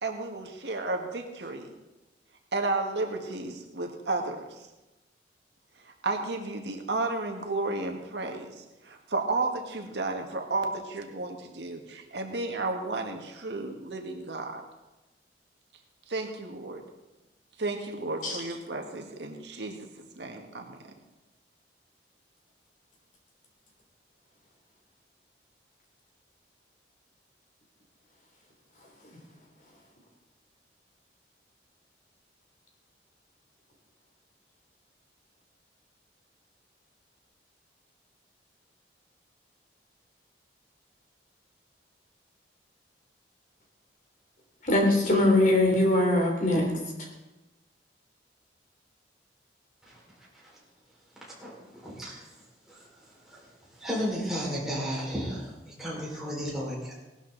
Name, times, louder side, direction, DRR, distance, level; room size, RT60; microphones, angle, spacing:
voice 1, 0.0-1.7 2.5-4.5 6.0-14.6 16.1-16.8 17.6-19.9 20.2-20.8, right 3 dB, 75° right, 3 dB, 1.7 m, -32 dB
voice 2, 44.6-46.7, left 1 dB, 45° left, 1 dB, 3.0 m, -22 dB
voice 3, 51.2-52.3 52.7-52.9 53.2-53.4 53.8-56.9, equal, ahead, -6 dB, 4.8 m, -34 dB
18.5 x 12.0 x 4.0 m, 1.0 s
head